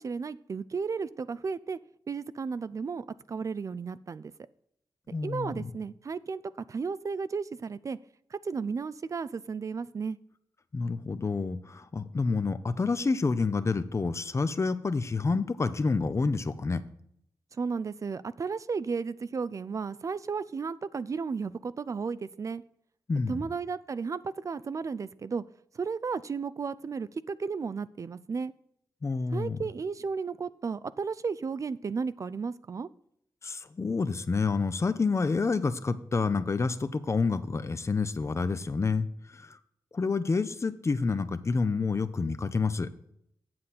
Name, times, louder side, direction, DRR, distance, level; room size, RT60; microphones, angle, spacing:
voice 1, 0.0-1.8 2.1-4.3 5.2-6.4 6.7-8.0 8.3-10.2 17.6-22.6 23.3-25.4 25.8-28.5 29.3-32.9, right 5 dB, 45° right, 16 dB, 0.3 m, -34 dB
voice 2, 5.1-5.7 10.7-16.8 23.1-23.4 29.0-29.6 33.4-39.1 39.3-39.6 39.9-42.9, left 4 dB, 40° left, 12 dB, 0.6 m, -28 dB
7.7 x 7.6 x 4.2 m, 0.72 s
cardioid pair, 65°, 8 cm